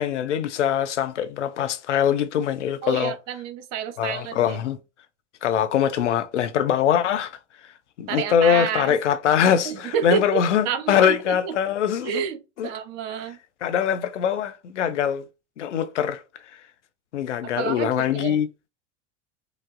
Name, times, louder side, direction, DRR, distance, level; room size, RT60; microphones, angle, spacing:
voice 1, 0.0-3.2 4.0-4.8 5.4-7.4 8.0-12.3 12.6-12.7 13.6-15.2 15.6-16.2 17.1-18.5, left 9 dB, 85° left, 0.5 m, -23 dB
voice 2, 2.8-4.6 8.1-9.0 9.6-11.5 12.0-13.4 17.4-18.4, right 8 dB, 50° right, 0.8 m, -29 dB
4.7 x 2.0 x 2.5 m
hypercardioid pair, 80°, 35 cm